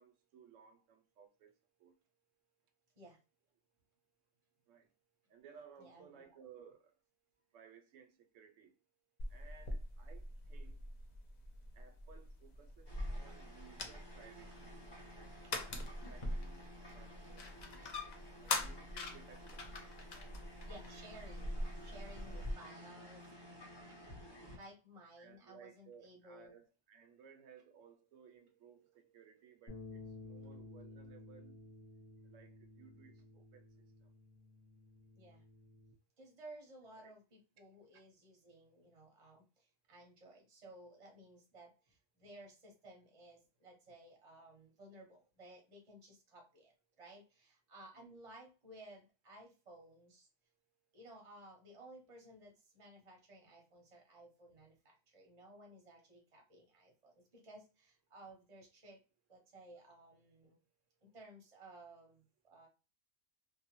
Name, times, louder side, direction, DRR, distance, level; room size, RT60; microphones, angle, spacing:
voice 1, 0.0-1.5 1.8-1.9 4.7-4.9 5.3-6.9 7.5-8.7 9.3-10.8 11.7-14.8 15.1-15.3 15.6-16.6 16.9-18.0 18.4-19.6 22.3-22.4 25.2-31.7 32.3-33.6 36.9-37.1 48.0-48.1, right 7 dB, 75° right, 0.9 m, -60 dB
voice 2, 5.8-6.3 14.5-14.6 14.9-15.0 15.4-15.7 16.9-18.0 20.0-20.1 20.7-21.5 21.8-23.4 24.5-26.6 35.2-35.4 36.2-50.3 50.9-59.0 59.3-60.6 61.0-62.7, right 1 dB, 35° right, 0.6 m, -57 dB
sound 1, 9.2-22.5, left 2 dB, 70° left, 0.4 m, -43 dB
sound 2, 12.8-24.6, equal, 20° left, 0.9 m, -55 dB
sound 3, 29.7-35.9, left 3 dB, 55° left, 1.2 m, -54 dB
2.7 x 2.0 x 2.8 m
omnidirectional pair, 1.3 m